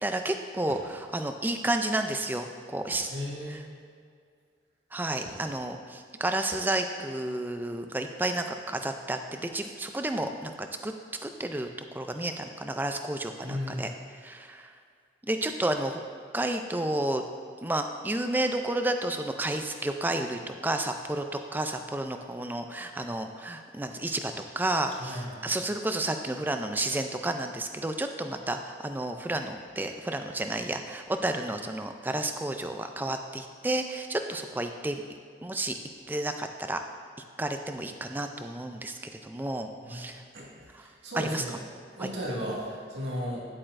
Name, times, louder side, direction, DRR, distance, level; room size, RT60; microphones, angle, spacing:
voice 1, 0.0-3.1 3.5-3.6 4.9-10.5 10.8-10.9 11.2-13.9 14.2-14.7 15.2-16.0 16.3-17.2 17.6-35.0 35.4-35.8 36.1-36.8 37.4-40.2 40.7-40.8 41.1-41.4 42.0-42.1, right 1 dB, 10° right, 6 dB, 0.3 m, -31 dB
sound 1, 0.6-1.4 2.8-3.8 5.2-6.0, equal, 45° right, 1.1 m, -51 dB
voice 2, 3.1-3.6 13.4-13.9 25.0-25.5 39.8-40.5 40.8-41.5 42.0-43.4, equal, 85° right, -5 dB, 2.0 m, -35 dB
10.0 x 8.6 x 2.5 m, 2.2 s
head